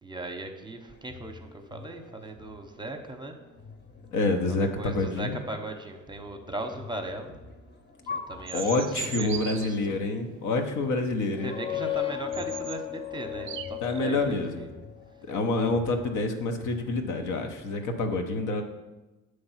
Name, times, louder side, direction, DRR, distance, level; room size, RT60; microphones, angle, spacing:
voice 1, 0.0-3.4 4.5-7.3 8.0-8.9 9.2-10.0 11.4-14.7, right 1 dB, 15° right, 5 dB, 0.8 m, -38 dB
sound 1, 0.9-17.6, left 4 dB, 35° left, 1.0 m, -47 dB
voice 2, 4.1-5.4 8.5-11.5 13.8-14.7 15.3-18.6, left 2 dB, 80° left, 5 dB, 0.9 m, -27 dB
sound 2, 8.5-9.7 11.9-12.0 12.3-12.8 13.3-14.0, right 9 dB, 45° right, 0.5 m, -37 dB
sound 3, 11.3-14.9, left 12 dB, 20° left, 0.3 m, -35 dB
7.9 x 3.3 x 5.7 m, 1.1 s
cardioid pair, 90°, 30 cm